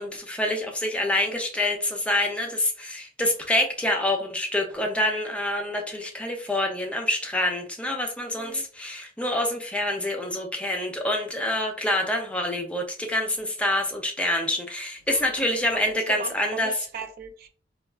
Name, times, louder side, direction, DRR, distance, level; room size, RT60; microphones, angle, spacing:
voice 1, 0.0-16.7, left 1 dB, 5° left, 0.5 m, -26 dB
voice 2, 16.1-17.5, right 5 dB, 55° right, 0.3 m, -38 dB
3.9 x 2.3 x 2.3 m
head